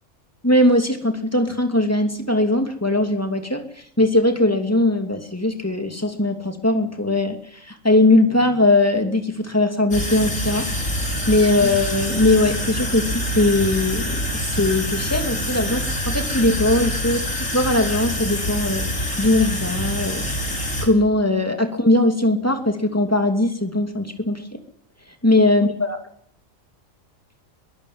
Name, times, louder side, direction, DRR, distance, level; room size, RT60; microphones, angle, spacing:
voice 1, 0.4-3.6 4.0-10.7 11.3-18.9 19.2-20.3 20.8-24.4 25.2-26.0, left 2 dB, 10° left, 5 dB, 2.8 m, -20 dB
sound 1, 9.9-20.9, equal, 80° left, 5.9 m, -26 dB
23.0 x 15.0 x 9.7 m, 0.66 s
omnidirectional pair, 1.3 m